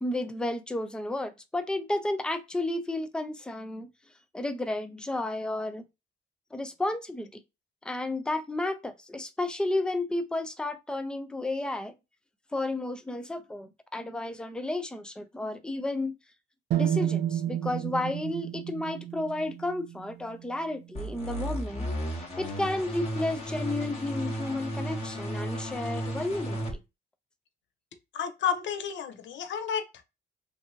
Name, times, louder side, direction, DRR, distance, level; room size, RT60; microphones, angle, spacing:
voice 1, 0.0-3.9 4.3-5.8 6.5-7.4 7.8-11.9 12.5-16.1 16.7-21.9 22.1-26.6, left 2 dB, 5° left, 0.4 m, -32 dB
sound 1, 16.7-20.7, right 10 dB, 60° right, 0.4 m, -31 dB
sound 2, 20.9-26.7, equal, 35° left, 1.1 m, -34 dB
voice 2, 28.1-30.0, left 8 dB, 70° left, 0.6 m, -31 dB
2.6 x 2.5 x 2.8 m
cardioid pair, 90°, 20 cm